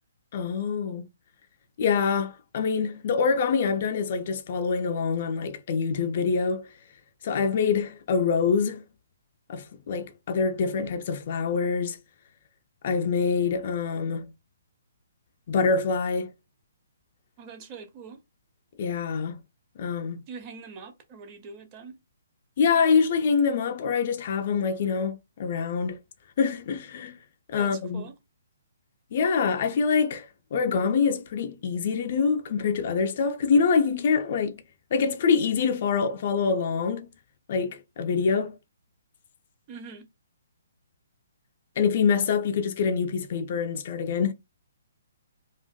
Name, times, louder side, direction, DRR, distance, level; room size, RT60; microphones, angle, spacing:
voice 1, 0.3-1.1 1.8-6.7 7.2-8.8 9.5-12.0 12.8-14.3 15.5-16.3 18.8-19.4 19.8-20.2 22.6-26.0 26.4-27.2 27.5-28.1 29.1-34.6 34.9-37.1 37.5-38.6 41.8-44.3, left 5 dB, 45° left, 0.3 m, -25 dB
voice 2, 17.4-18.2 20.3-22.0 27.6-28.1 39.7-40.1, right 5 dB, 25° right, 0.5 m, -43 dB
2.5 x 2.2 x 2.3 m
figure-of-eight pair, 130°, 0 cm